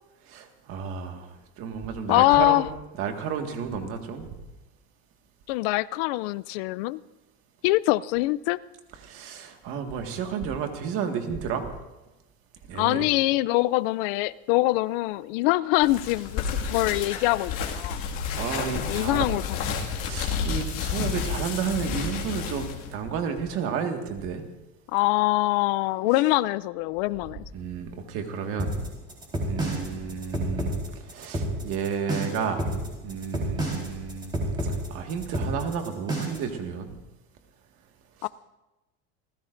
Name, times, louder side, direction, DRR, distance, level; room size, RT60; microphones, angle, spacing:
voice 1, 0.3-2.7 3.0-4.3 9.0-11.7 12.7-13.0 18.3-19.3 20.0-24.4 27.5-28.8 29.5-30.7 31.1-32.7 33.0-36.9 38.2-38.3, right 6 dB, 45° right, 4 dB, 1.8 m, -32 dB
voice 2, 2.1-2.7 5.5-7.0 7.6-8.6 12.7-18.0 18.9-19.6 24.9-27.4 38.2-38.3, left 19 dB, 65° left, 19 dB, 0.4 m, -24 dB
sound 1, 15.8-22.9, left 6 dB, 45° left, 2.1 m, -30 dB
sound 2, 28.6-36.5, right 1 dB, 15° right, 4.0 m, -29 dB
29.0 x 15.5 x 2.6 m, 1.0 s
cardioid pair, 165°, 32 cm